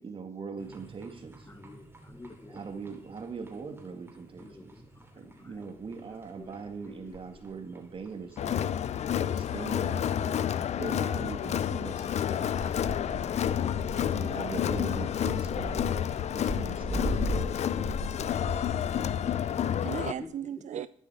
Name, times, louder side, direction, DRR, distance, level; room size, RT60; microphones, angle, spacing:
voice 1, 0.0-1.5 2.5-4.7 5.1-8.8 9.4-10.4 10.8-12.6 13.9-16.0 16.3-17.7, right 5 dB, 40° right, 5 dB, 2.3 m, -41 dB
sound 1, 0.6-20.3, right 1 dB, 15° right, 2.8 m, -42 dB
voice 2, 1.6-2.6 4.4-4.6 6.4-6.5 7.0-7.1 10.2-10.3 20.1-20.3, left 3 dB, 20° left, 11 dB, 1.0 m, -48 dB
Crowd, 8.4-20.1, left 9 dB, 55° left, 0.5 m, -30 dB
voice 3, 19.1-20.9, right 10 dB, 60° right, 14 dB, 0.4 m, -38 dB
11.5 x 9.9 x 4.9 m, 0.69 s
cardioid pair, 95°, 13 cm